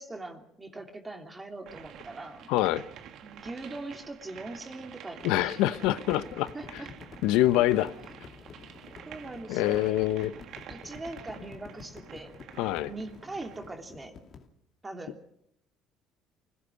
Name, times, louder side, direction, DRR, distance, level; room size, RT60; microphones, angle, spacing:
voice 1, 0.0-2.5 3.2-5.6 6.5-6.9 7.6-7.7 9.0-9.9 10.7-12.3 12.8-14.2 14.8-15.3, right 2 dB, 20° right, 4 dB, 3.1 m, -41 dB
sound 1, 1.7-13.7, right 9 dB, 65° right, 1.9 m, -48 dB
voice 2, 2.5-2.8 5.2-6.5 7.2-7.9 9.5-10.3 12.6-12.9, left 14 dB, 80° left, 14 dB, 0.9 m, -25 dB
sound 2, 5.2-14.5, left 5 dB, 45° left, 2.6 m, -50 dB
24.5 x 17.5 x 6.6 m, 0.73 s
supercardioid pair, 95°, 0 cm